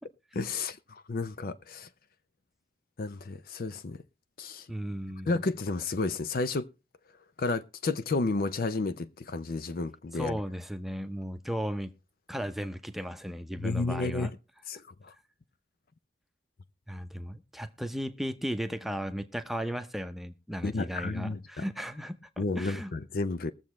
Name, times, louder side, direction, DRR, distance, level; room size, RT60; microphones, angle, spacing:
voice 1, 0.3-0.8 1.1-1.9 3.0-4.0 4.4-4.7 5.3-6.7 7.4-10.4 13.6-14.3 14.7-14.8 20.6-21.4 22.4-23.5, left 3 dB, 50° left, 0.5 m, -31 dB
voice 2, 4.7-5.3 10.1-11.9 12.3-14.3 16.9-22.9, equal, ahead, 0.7 m, -35 dB
21.5 x 7.1 x 3.1 m
head